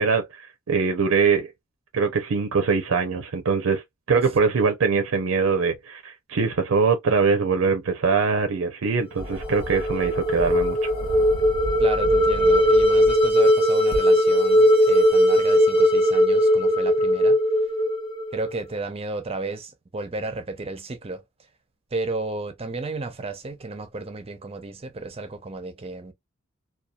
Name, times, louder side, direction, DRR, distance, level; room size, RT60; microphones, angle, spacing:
voice 1, 0.0-1.5 1.9-10.9, right 5 dB, 80° right, 0.5 m, -22 dB
sound 1, 9.2-13.3 13.9-14.0, equal, 70° left, 0.8 m, -34 dB
sound 2, 9.3-18.5, equal, 25° left, 0.7 m, -19 dB
voice 2, 11.8-17.4 18.3-21.2 21.9-26.1, right 3 dB, 30° right, 0.6 m, -33 dB
2.7 x 2.3 x 2.2 m
head